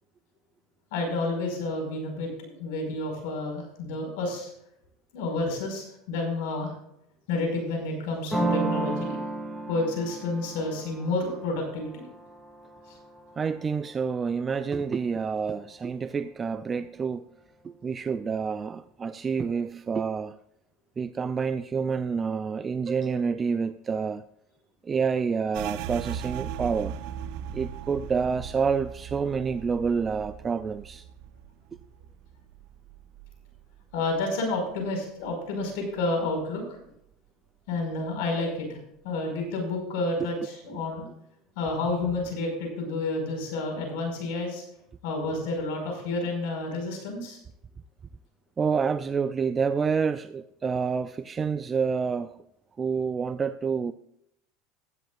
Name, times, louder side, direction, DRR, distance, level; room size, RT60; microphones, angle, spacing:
voice 1, 0.9-4.5 5.1-6.7 7.3-9.2 9.7-12.0 12.9-13.0 33.9-36.8 37.7-38.8 39.0-41.1 41.6-44.6 45.0-47.4, left 2 dB, 80° left, 5.3 m, -30 dB
sound 1, 8.3-13.9, right 2 dB, ahead, 2.1 m, -33 dB
voice 2, 13.4-17.2 17.6-20.3 21.0-24.2 24.8-27.0 27.5-31.0 40.2-40.3 48.6-52.4 52.8-53.9, right 5 dB, 25° right, 0.5 m, -28 dB
sound 2, 25.5-34.9 35.2-36.5 36.8-37.3 37.7-38.3, right 9 dB, 70° right, 0.8 m, -40 dB
16.0 x 13.0 x 2.5 m
supercardioid pair, 130°, 0 cm